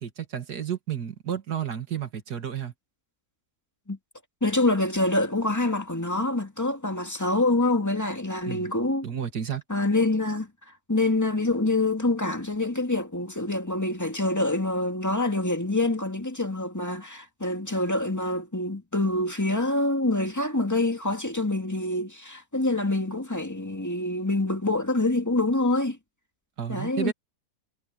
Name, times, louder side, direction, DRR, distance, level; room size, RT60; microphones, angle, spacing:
voice 1, 0.0-2.7 8.5-8.7 9.0-9.6 26.6-27.1, right 9 dB, 75° right, 2.6 m, -31 dB
voice 2, 4.4-9.1 9.7-10.5 10.9-26.0 26.7-27.1, left 2 dB, 10° left, 2.2 m, -26 dB
omnidirectional pair, 1.7 m